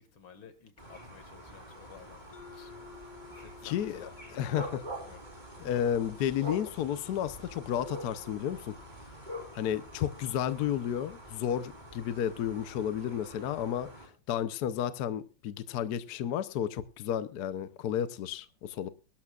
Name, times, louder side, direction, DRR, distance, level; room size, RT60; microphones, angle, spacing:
voice 1, 0.0-2.7 3.0-4.2 4.4-4.6 5.0-5.2, left 7 dB, 90° left, 2.7 m, -54 dB
sound 1, 0.8-14.1, right 1 dB, 20° right, 3.8 m, -46 dB
Mallet percussion, 2.3-6.9, left 6 dB, 30° left, 1.1 m, -54 dB
voice 2, 3.6-4.1 4.3-4.8 5.6-8.8 9.5-18.9, left 10 dB, 65° left, 1.2 m, -32 dB
24.0 x 12.0 x 2.4 m
omnidirectional pair, 2.2 m